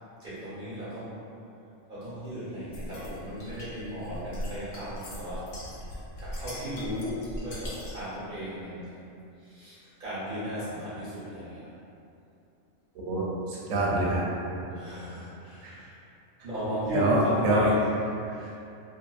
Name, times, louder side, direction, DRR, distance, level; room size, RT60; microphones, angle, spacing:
voice 1, 0.2-1.2 1.9-5.5 6.2-9.1 9.4-11.7 14.7-15.9 16.4-17.8 18.3-18.5, equal, 45° right, -10 dB, 1.0 m, -35 dB
sound 1, 2.7-8.1, equal, 65° left, 0.7 m, -40 dB
voice 2, 13.1-14.2 15.6-15.7 16.9-17.7 18.3-18.4, right 1 dB, 85° right, -4 dB, 1.0 m, -25 dB
2.7 x 2.1 x 2.3 m, 2.6 s
omnidirectional pair, 1.3 m